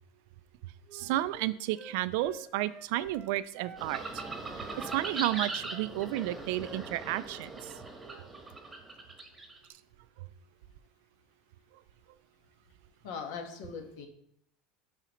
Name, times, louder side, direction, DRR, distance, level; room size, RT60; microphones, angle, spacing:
Wind instrument woodwind instrument, 0.9-3.9 4.1-4.4 4.7-7.3 7.6-8.3, right 4 dB, 30° right, 0.7 m, -50 dB
voice 1, 0.9-4.2 4.6-7.7, right 15 dB, 70° right, 16 dB, 0.3 m, -32 dB
sound 1, 3.8-9.6, right 2 dB, 15° right, 1.1 m, -40 dB
voice 2, 13.0-14.1, left 5 dB, 70° left, 3 dB, 1.4 m, -40 dB
11.5 x 4.0 x 3.1 m, 0.68 s
supercardioid pair, 140°, 0 cm